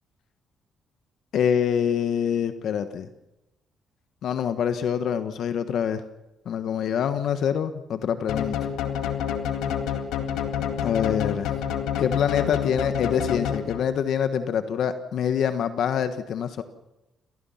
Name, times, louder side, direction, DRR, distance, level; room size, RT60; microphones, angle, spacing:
voice 1, 1.3-3.1 4.2-6.0 6.4-8.7 10.8-11.5 12.0-16.6, left 8 dB, 70° left, 10 dB, 1.5 m, -25 dB
sound 1, 8.3-14.0, left 8 dB, 90° left, 2.2 m, -28 dB
28.0 x 19.0 x 5.8 m, 0.96 s
cardioid pair, 90°, 0 cm